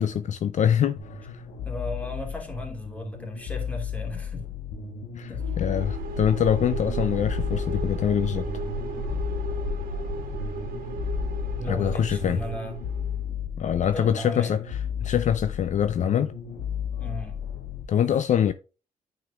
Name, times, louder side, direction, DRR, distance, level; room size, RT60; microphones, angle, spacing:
voice 1, 0.0-1.4 5.2-5.3 5.6-8.5 11.7-12.4 13.6-16.3 17.9-18.5, left 9 dB, 55° left, 0.5 m, -24 dB
sound 1, 1.0-17.8, left 8 dB, 85° left, 1.3 m, -34 dB
voice 2, 1.6-4.5 5.3-5.5 11.5-12.8 13.8-14.5 17.0-17.4, equal, 10° left, 2.7 m, -36 dB
sound 2, 5.4-13.2, right 2 dB, 80° right, 1.2 m, -33 dB
9.2 x 5.1 x 2.4 m
cardioid pair, 85°, 15 cm